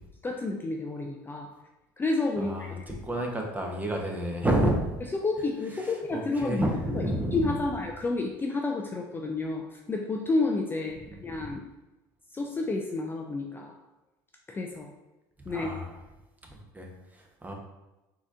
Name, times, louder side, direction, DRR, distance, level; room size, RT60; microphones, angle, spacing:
voice 1, 0.2-1.5 2.0-3.0 5.1-6.6 6.9-11.6 12.3-13.7 14.5-14.9 15.5-15.7, left 3 dB, 20° left, 2 dB, 0.4 m, -30 dB
voice 2, 2.4-4.9 5.7-7.5 11.0-11.5 15.4-16.0 16.4-17.5, right 1 dB, 15° right, 1 dB, 0.8 m, -31 dB
4.0 x 2.8 x 2.4 m, 1.0 s
hypercardioid pair, 75°, 11 cm